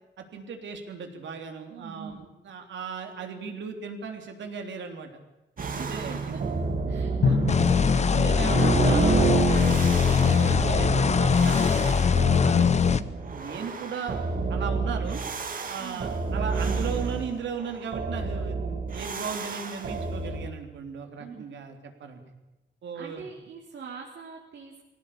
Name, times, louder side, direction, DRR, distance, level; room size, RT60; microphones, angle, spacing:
voice 1, 0.2-5.2 5.6-6.4 7.2-7.4 7.9-12.0 12.4-12.7 13.3-14.2 14.5-15.2 15.7-22.2 22.8-23.2, right 6 dB, 90° right, 5 dB, 3.5 m, -37 dB
voice 2, 1.7-2.3 5.7-6.6 6.9-7.6 10.5-11.0 11.6-12.0 12.5-13.1 15.8-16.1 21.2-21.4 22.9-24.9, right 6 dB, 70° right, -2 dB, 3.8 m, -43 dB
sound 1, 5.6-20.5, right 4 dB, 50° right, 2.5 m, -29 dB
Drum, 7.2-9.9, left 4 dB, 70° left, 7.1 m, -30 dB
sound 2, 7.5-13.0, left 6 dB, 40° left, 0.8 m, -21 dB
21.5 x 17.5 x 8.7 m, 1.0 s
wide cardioid pair, 145°, 19 cm